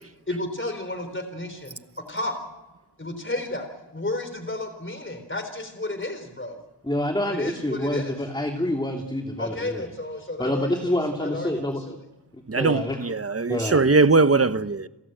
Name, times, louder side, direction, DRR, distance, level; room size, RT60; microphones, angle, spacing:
voice 1, 0.3-1.7 2.1-2.4 3.0-3.7 3.9-6.6 7.3-8.1 9.4-10.7 11.2-11.5, left 2 dB, 30° left, 3.8 m, -31 dB
voice 2, 6.8-9.9 10.4-11.8 12.6-13.1 13.5-13.9, left 1 dB, 10° left, 2.8 m, -27 dB
voice 3, 12.5-14.9, right 3 dB, 35° right, 1.0 m, -20 dB
29.5 x 15.0 x 9.0 m
wide cardioid pair, 60°, 41 cm